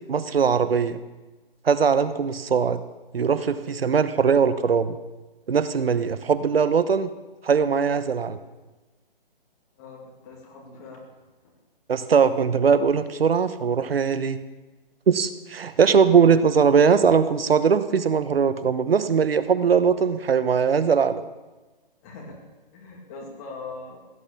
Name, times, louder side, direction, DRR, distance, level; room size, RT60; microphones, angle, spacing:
voice 1, 0.1-1.0 1.6-2.8 3.1-5.0 5.5-7.1 7.4-8.4 11.9-14.4 15.1-21.2, right 6 dB, 75° right, 13 dB, 1.1 m, -20 dB
voice 2, 9.8-11.0 22.0-22.4 22.7-24.0, left 3 dB, 15° left, 0 dB, 2.3 m, -41 dB
16.5 x 9.6 x 6.9 m, 1.2 s
hypercardioid pair, 170°, 29 cm